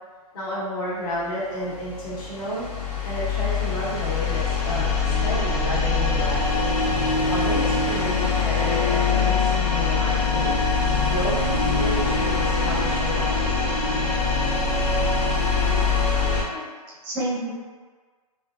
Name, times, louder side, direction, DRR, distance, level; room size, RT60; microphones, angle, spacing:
voice 1, 0.3-2.7 3.0-6.6 7.0-10.5 11.1-13.2, equal, 35° left, -9 dB, 0.8 m, -31 dB
sound 1, 1.5-16.4, left 4 dB, 85° left, 0.8 m, -23 dB
voice 2, 17.0-17.5, right 1 dB, 20° right, -6 dB, 0.6 m, -30 dB
3.2 x 2.2 x 2.2 m, 1.5 s
hypercardioid pair, 155°, 20 cm